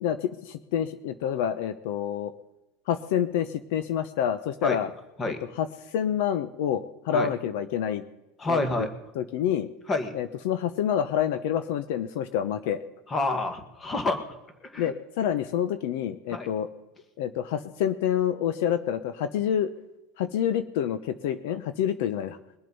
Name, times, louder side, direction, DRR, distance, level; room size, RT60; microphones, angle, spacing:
voice 1, 0.0-2.3 2.9-4.9 5.2-5.7 5.9-8.0 8.5-8.9 9.2-9.7 10.1-12.8 14.8-16.7 17.2-19.7 20.2-22.4, left 9 dB, 70° left, 11 dB, 0.8 m, -28 dB
voice 2, 8.4-8.9 9.9-10.1 13.1-14.2 14.6-14.9 16.3-16.5, left 2 dB, 20° left, 8 dB, 1.8 m, -28 dB
22.0 x 7.8 x 5.5 m, 0.96 s
supercardioid pair, 145°, 0 cm